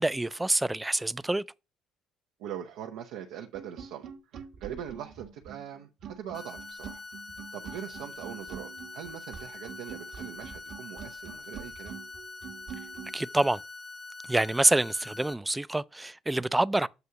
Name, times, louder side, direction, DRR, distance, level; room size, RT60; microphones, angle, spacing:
voice 1, 0.0-1.4 13.1-13.6 14.3-16.9, right 2 dB, 10° right, 0.3 m, -26 dB
voice 2, 2.4-7.0 7.5-12.0, right 9 dB, 90° right, 0.7 m, -42 dB
sound 1, 3.5-13.1, right 8 dB, 65° right, 1.1 m, -45 dB
sound 2, 6.3-15.3, left 3 dB, 25° left, 0.8 m, -44 dB
7.9 x 2.7 x 5.7 m
cardioid pair, 95°, 0 cm